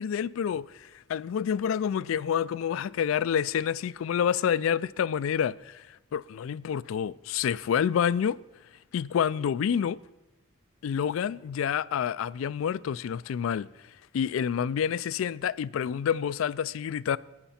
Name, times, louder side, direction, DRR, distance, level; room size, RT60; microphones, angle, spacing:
voice 1, 0.0-8.4 8.9-10.0 10.8-13.7 14.1-17.2, left 8 dB, 80° left, 0.3 m, -28 dB
14.5 x 9.9 x 4.3 m
head